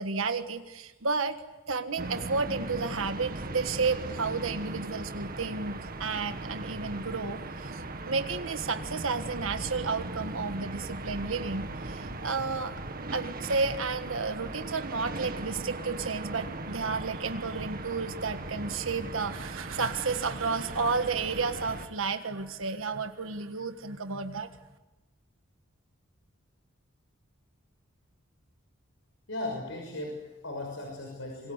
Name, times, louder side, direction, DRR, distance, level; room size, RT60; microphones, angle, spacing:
voice 1, 0.0-1.4 1.7-12.7 13.1-24.5, right 4 dB, 80° right, 8 dB, 1.6 m, -32 dB
sound 1, 2.0-21.9, right 2 dB, 45° right, 2.0 m, -38 dB
voice 2, 29.3-31.5, left 2 dB, 70° left, 1 dB, 6.3 m, -37 dB
26.5 x 24.0 x 8.2 m, 1.1 s
head